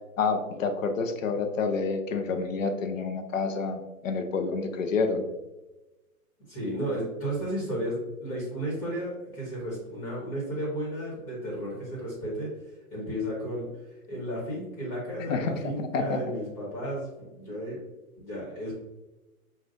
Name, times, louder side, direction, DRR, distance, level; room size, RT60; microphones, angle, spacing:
voice 1, 0.2-5.2 15.2-16.2, left 4 dB, 60° left, 6 dB, 0.7 m, -28 dB
voice 2, 6.5-12.5 12.9-13.7 14.1-17.8 18.2-18.7, equal, 25° left, -6 dB, 1.4 m, -33 dB
6.2 x 2.5 x 2.5 m, 1.1 s
hypercardioid pair, 165°, 45 cm